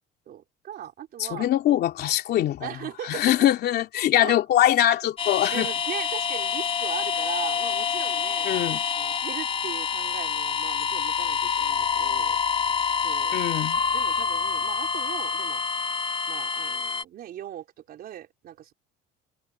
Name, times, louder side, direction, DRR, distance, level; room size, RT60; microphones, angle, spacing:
voice 1, 0.3-1.5 2.6-3.4 4.1-4.4 5.5-8.6 9.0-12.4 13.0-13.4 13.9-15.6 16.3-18.7, right 11 dB, 50° right, 3.8 m, -39 dB
voice 2, 1.3-2.7 3.1-5.7 8.4-8.8 13.3-13.8, left 12 dB, 50° left, 2.8 m, -22 dB
sound 1, 5.2-17.0, left 6 dB, 30° left, 2.2 m, -27 dB
cardioid pair, 145°, 21 cm